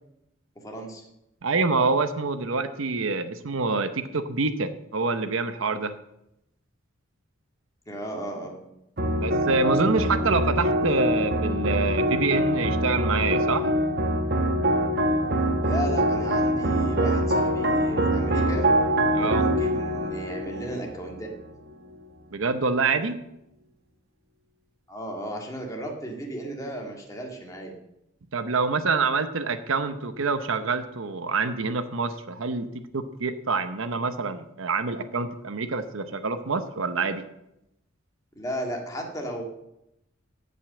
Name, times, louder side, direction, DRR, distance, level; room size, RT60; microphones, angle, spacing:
voice 1, 0.6-1.0 7.9-8.6 15.6-18.7 19.2-21.4 24.9-27.7 38.4-39.4, right 1 dB, 15° left, 0 dB, 1.8 m, -34 dB
voice 2, 1.4-5.9 9.2-13.7 19.1-19.5 22.3-23.2 28.3-32.7 32.9-37.2, right 4 dB, 75° right, 9 dB, 0.8 m, -26 dB
sound 1, 9.0-21.5, equal, 50° right, 1.1 m, -24 dB
16.5 x 5.4 x 7.6 m, 0.86 s
head